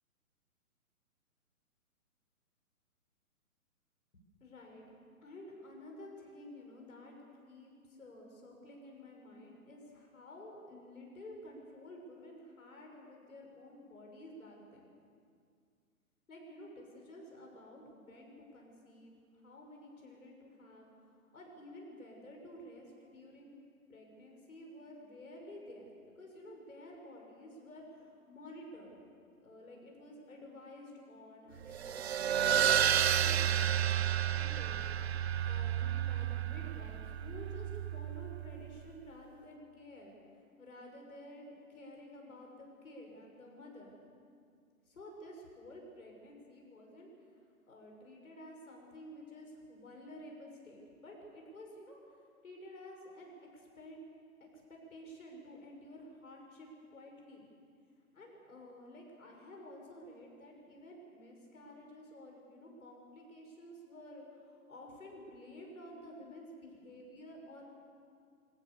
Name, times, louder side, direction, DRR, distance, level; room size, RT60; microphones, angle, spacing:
voice 1, 4.1-4.8 5.2-7.1 7.4-14.9 16.3-23.5 23.9-25.9 26.2-29.0 29.4-40.1 40.6-43.9 44.9-47.1 47.7-54.0 54.4-57.5 58.1-67.6, left 1 dB, 70° left, 0 dB, 6.1 m, -52 dB
sound 1, 31.7-38.7, right 10 dB, 50° right, 0.6 m, -31 dB
23.5 x 22.5 x 6.9 m, 2.2 s
figure-of-eight pair, 130°, 43 cm